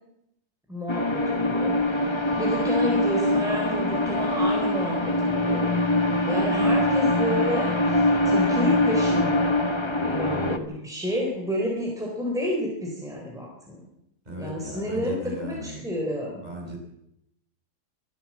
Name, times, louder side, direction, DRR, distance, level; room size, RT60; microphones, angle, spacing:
voice 1, 0.7-5.7 6.3-9.5 10.0-13.8 14.4-16.4, equal, ahead, -1 dB, 4.0 m, -30 dB
sound 1, 0.9-10.6, left 1 dB, 20° left, 1.3 m, -23 dB
voice 2, 14.2-15.9 16.4-16.8, right 1 dB, 25° right, 0 dB, 6.6 m, -37 dB
24.5 x 14.5 x 7.5 m, 0.79 s
omnidirectional pair, 1.7 m